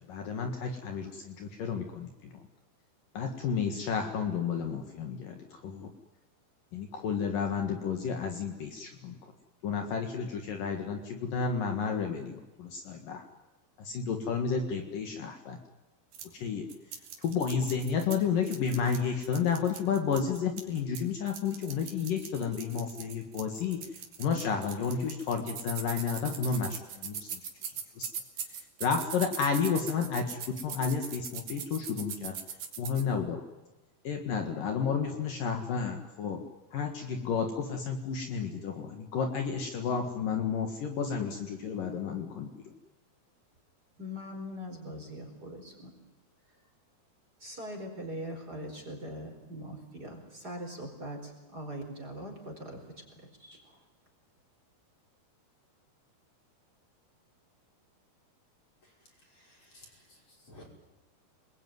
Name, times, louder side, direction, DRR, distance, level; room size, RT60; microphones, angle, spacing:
voice 1, 0.1-2.3 3.2-5.4 5.6-5.9 6.7-9.2 9.6-13.2 13.8-15.6 16.4-16.7 17.2-23.8 24.2-27.4 28.0-28.1 28.8-32.3 32.8-33.4 34.1-36.4 36.7-42.5, left 6 dB, 60° left, 4 dB, 3.3 m, -31 dB
sound 1, 16.1-16.3 16.7-18.2 18.4-21.0 21.3-33.0, right 7 dB, 65° right, 4.2 m, -40 dB
voice 2, 44.0-45.9 46.5-46.6 47.4-53.8, equal, 25° right, 2 dB, 4.7 m, -42 dB
voice 3, 59.0-60.6, left 1 dB, 30° left, 0 dB, 6.2 m, -56 dB
28.0 x 21.5 x 9.5 m, 1.1 s
omnidirectional pair, 4.5 m